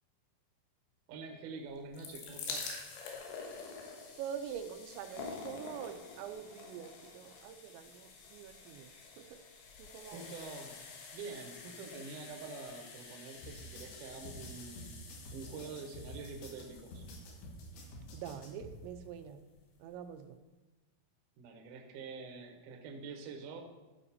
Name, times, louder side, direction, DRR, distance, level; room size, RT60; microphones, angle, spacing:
voice 1, 1.1-2.8 10.1-10.8 11.1-14.9 15.3-17.0 21.4-23.6, right 4 dB, 70° right, 3 dB, 2.0 m, -46 dB
sound 1, 1.7-18.7 19.5-19.6 19.8-19.9, left 4 dB, 90° left, 3.6 m, -48 dB
voice 2, 4.2-8.9 9.2-9.4 9.8-10.3 18.1-19.4 19.8-20.4, right 8 dB, 90° right, 8 dB, 3.0 m, -45 dB
sound 2, 13.4-18.7, left 1 dB, 70° left, 3.4 m, -49 dB
12.5 x 5.5 x 4.2 m, 1.2 s
omnidirectional pair, 5.1 m